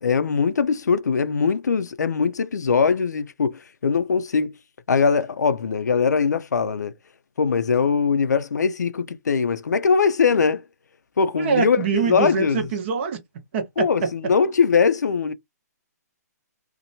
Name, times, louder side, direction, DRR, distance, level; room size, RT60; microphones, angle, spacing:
voice 1, 0.0-4.6 4.9-6.9 7.4-10.7 11.2-12.7 13.8-15.3, left 5 dB, 80° left, 0.5 m, -21 dB
voice 2, 11.4-13.2 13.5-13.9, right 5 dB, 40° right, 0.9 m, -24 dB
2.8 x 2.1 x 2.7 m
hypercardioid pair, 140°, 9 cm